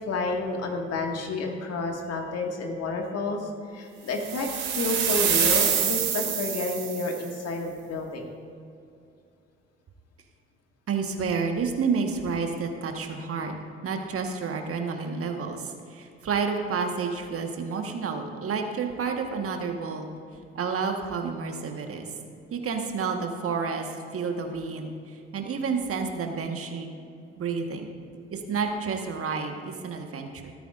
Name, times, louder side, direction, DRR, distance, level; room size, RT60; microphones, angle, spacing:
voice 1, 0.1-8.3, left 2 dB, 50° left, 1 dB, 2.0 m, -30 dB
sound 1, 4.2-7.2, right 7 dB, 70° right, 2.4 m, -26 dB
voice 2, 10.9-13.6 13.8-20.1 20.5-22.1 22.5-26.9 27.4-27.9 28.3-30.5, right 5 dB, 45° right, 4 dB, 1.5 m, -30 dB
17.5 x 13.5 x 2.6 m, 2.4 s
figure-of-eight pair, 50°, 33 cm